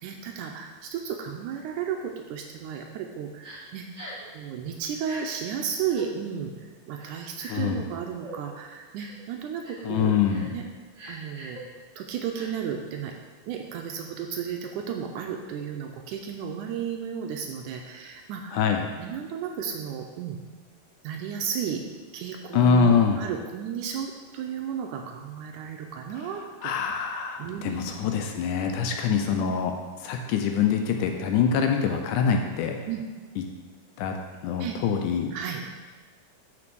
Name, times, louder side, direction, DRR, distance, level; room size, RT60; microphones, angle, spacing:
voice 1, 0.0-3.9 4.3-6.5 6.9-10.1 10.5-10.6 11.1-11.6 12.0-13.2 13.5-18.6 19.0-20.4 21.0-21.8 22.1-27.1 27.4-27.9 28.9-29.5 32.9-33.0 34.6-34.8 35.3-35.6, right 8 dB, 80° right, 2 dB, 1.9 m, -33 dB
Crying sobbing, 3.4-3.6 3.9-4.3 5.0-5.2 5.8-6.1 7.0-7.7 8.2-8.4 9.0-9.2 9.6-9.9 10.3-10.5 10.9-11.6 12.3-12.5, right 1 dB, 35° right, 1.0 m, -42 dB
voice 2, 7.5-7.9 9.8-10.5 18.5-18.9 22.5-23.2 26.2-26.3 26.6-29.7 30.0-32.8 33.4-33.5 34.0-34.2 34.4-35.3, left 6 dB, 80° left, 4 dB, 2.0 m, -24 dB
5.9 x 5.1 x 6.1 m, 1.4 s
omnidirectional pair, 3.9 m